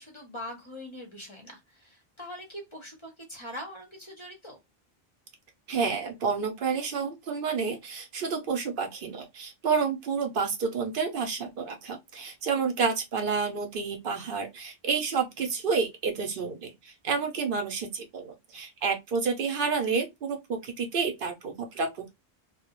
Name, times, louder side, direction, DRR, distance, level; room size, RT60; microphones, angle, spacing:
voice 1, 0.0-4.6, left 1 dB, 35° left, 0.6 m, -42 dB
voice 2, 5.7-22.1, right 5 dB, 65° right, 0.7 m, -30 dB
2.2 x 2.0 x 2.8 m
omnidirectional pair, 1.0 m